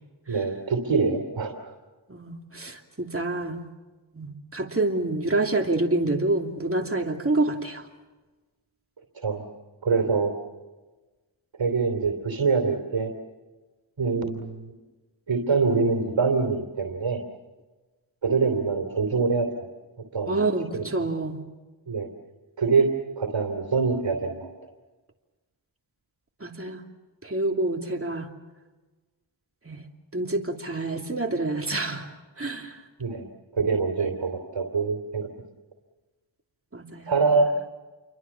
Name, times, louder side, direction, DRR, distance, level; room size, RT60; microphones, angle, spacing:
voice 1, 0.3-1.7 9.2-9.4 9.8-10.3 11.6-13.1 14.0-14.7 15.3-17.2 18.2-19.5 20.1-20.4 20.7-20.8 21.9-22.1 22.6-22.9 23.2-24.5 33.0-33.3 33.5-35.3 37.1-37.5, right 4 dB, 70° right, 5 dB, 3.1 m, -24 dB
voice 2, 2.1-3.6 4.1-7.9 20.3-21.4 26.4-26.8 27.2-28.3 29.6-29.8 30.1-32.1 32.4-32.8 36.7-37.1, right 2 dB, 30° right, 2 dB, 2.9 m, -27 dB
29.0 x 24.0 x 7.2 m, 1.2 s
cardioid pair, 50°, 47 cm